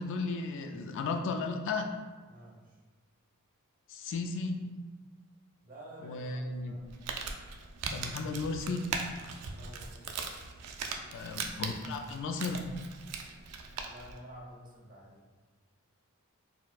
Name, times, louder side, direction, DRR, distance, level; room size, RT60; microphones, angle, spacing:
voice 1, 0.0-2.0 3.9-4.6 6.0-6.7 7.9-8.9 11.1-12.7, left 3 dB, 60° left, 5 dB, 0.3 m, -34 dB
voice 2, 2.3-2.8 5.6-6.8 9.5-10.0 13.8-15.2, equal, 40° right, -4 dB, 0.8 m, -50 dB
Crumpling crinkling, 6.8-14.2, right 5 dB, 80° right, 0.4 m, -40 dB
4.2 x 2.1 x 2.3 m, 1.4 s
head